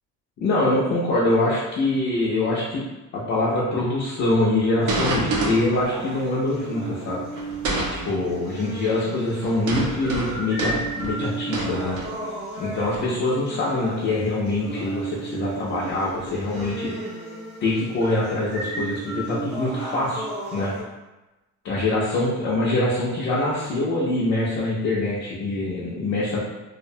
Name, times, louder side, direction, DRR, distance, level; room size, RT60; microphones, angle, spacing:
voice 1, 0.4-2.8 3.1-7.2 7.9-12.0 12.6-16.9 17.6-20.2 20.5-20.7 21.6-26.4, left 2 dB, 35° left, -7 dB, 0.4 m, -24 dB
sound 1, 4.8-20.8, right 2 dB, 10° right, 0.6 m, -34 dB
sound 2, 4.9-5.9 7.3-8.2 9.4-12.5 12.9-13.2 14.4-14.5 15.5-15.6 16.1-16.7, right 2 dB, 55° right, 0.5 m, -28 dB
2.5 x 2.0 x 2.6 m, 1.1 s
cardioid pair, 160°, 35 cm